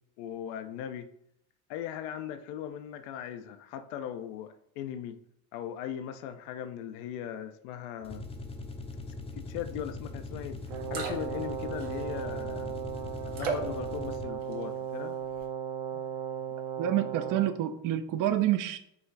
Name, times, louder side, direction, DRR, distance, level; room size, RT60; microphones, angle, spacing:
voice 1, 0.2-1.1 1.7-5.2 5.5-8.3 9.4-10.6 10.9-12.8 13.2-15.2, left 10 dB, 70° left, 9 dB, 0.6 m, -39 dB
sound 1, 8.0-14.5, left 2 dB, 15° left, 0.5 m, -41 dB
sound 2, 10.3-10.4 10.7-11.5 11.8-12.3 13.3-13.8 14.3-14.8 15.2-15.4, right 4 dB, 80° right, 1.2 m, -35 dB
Brass instrument, 10.7-17.6, right 8 dB, 60° right, 0.9 m, -36 dB
voice 2, 16.8-18.8, right 12 dB, 45° right, 9 dB, 0.5 m, -28 dB
4.9 x 2.4 x 3.2 m, 0.73 s
supercardioid pair, 90°, 45 cm